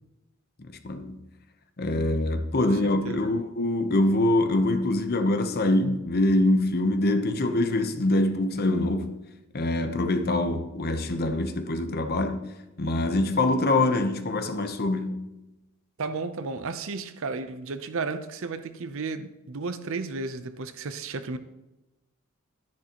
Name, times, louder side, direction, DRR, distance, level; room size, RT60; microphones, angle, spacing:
voice 1, 0.6-1.2 1.8-9.2 9.5-12.5 12.8-15.3, left 2 dB, 45° left, 0.9 m, -24 dB
voice 2, 16.0-21.4, right 4 dB, 65° right, 0.7 m, -33 dB
10.5 x 10.5 x 3.0 m
head